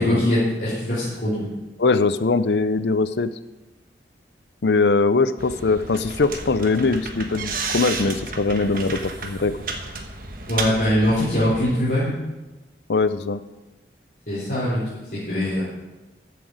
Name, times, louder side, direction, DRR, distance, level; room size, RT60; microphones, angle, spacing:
voice 1, 0.0-1.5 10.5-12.1 14.3-14.8 15.2-15.6, left 1 dB, 55° left, -10 dB, 4.1 m, -22 dB
voice 2, 1.8-3.3 4.6-9.5 12.9-13.4, left 3 dB, 80° left, 13 dB, 0.6 m, -21 dB
sound 1, 5.4-11.8, right 4 dB, 50° right, 1.3 m, -32 dB
14.0 x 7.7 x 5.0 m, 1.1 s
head